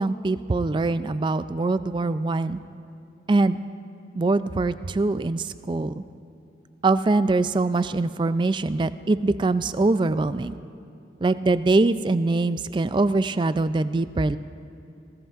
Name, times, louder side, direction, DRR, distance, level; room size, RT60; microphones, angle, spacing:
voice 1, 0.0-2.6 3.3-3.6 4.2-6.0 6.8-10.6 11.2-14.4, right 3 dB, 25° right, 13 dB, 0.3 m, -23 dB
19.5 x 16.5 x 2.5 m, 2.8 s
head